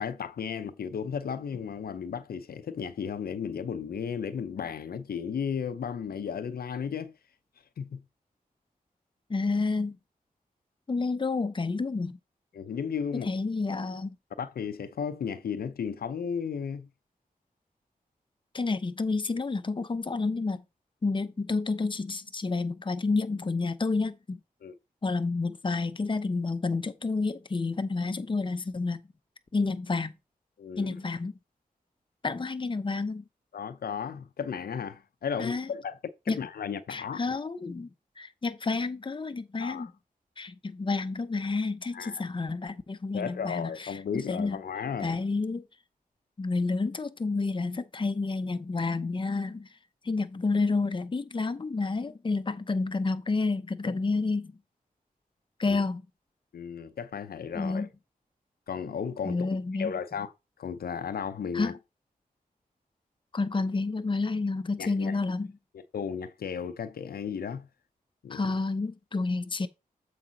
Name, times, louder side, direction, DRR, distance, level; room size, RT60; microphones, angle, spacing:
voice 1, 0.0-7.1 7.8-8.0 12.5-13.3 14.4-16.9 24.6-24.7 30.6-31.0 33.5-36.0 36.3-37.5 39.6-39.9 41.9-42.3 43.1-45.2 55.7-55.8 56.5-57.9 58.7-59.4 59.8-60.3 60.6-61.7 64.8-65.1 65.7-67.7 68.2-68.4, left 7 dB, 90° left, 0.6 m, -34 dB
voice 2, 9.3-10.0 10.9-12.2 13.1-14.2 18.5-20.6 21.0-24.4 25.0-29.0 29.5-30.1 30.8-31.3 32.2-33.2 35.4-35.7 36.3-36.4 36.9-37.9 38.2-39.9 40.4-44.6 45.0-45.6 46.4-49.7 50.0-54.5 55.6-56.0 57.6-57.9 59.2-59.9 61.5-61.8 63.3-65.5 68.3-69.7, left 3 dB, 35° left, 0.7 m, -30 dB
7.4 x 4.9 x 3.9 m
cardioid pair, 60°, 15 cm